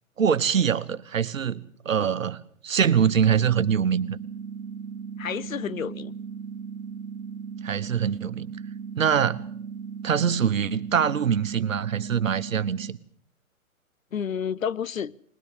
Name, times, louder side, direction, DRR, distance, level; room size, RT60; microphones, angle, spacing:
voice 1, 0.2-4.2 7.6-8.5 9.0-9.4 10.0-13.0, right 7 dB, 65° right, 1.2 m, -24 dB
sound 1, 2.9-12.9, right 6 dB, 90° right, 0.8 m, -37 dB
voice 2, 5.2-6.1 14.1-15.1, left 7 dB, 70° left, 0.8 m, -30 dB
20.5 x 20.0 x 6.6 m
figure-of-eight pair, 130°, 42 cm